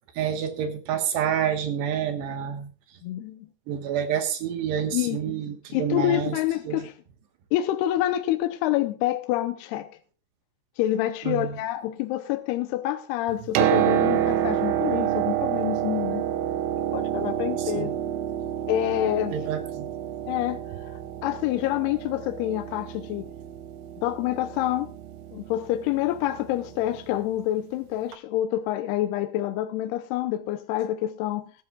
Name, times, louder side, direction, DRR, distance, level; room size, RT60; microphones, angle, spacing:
voice 1, 0.2-2.7 3.7-6.4 6.7-6.8 11.2-11.6 17.6-17.9 19.3-19.9, right 9 dB, 70° right, 3.3 m, -28 dB
voice 2, 3.0-3.5 4.9-5.4 5.7-6.9 7.5-9.9 10.8-16.2 16.9-18.0 18.7-19.4 20.3-20.9 21.2-23.3 24.0-24.9 25.3-31.5, left 13 dB, 80° left, 2.5 m, -27 dB
Piano, 13.3-27.0 28.1-28.2, right 11 dB, 90° right, 3.4 m, -28 dB
19.5 x 12.5 x 2.4 m
omnidirectional pair, 5.3 m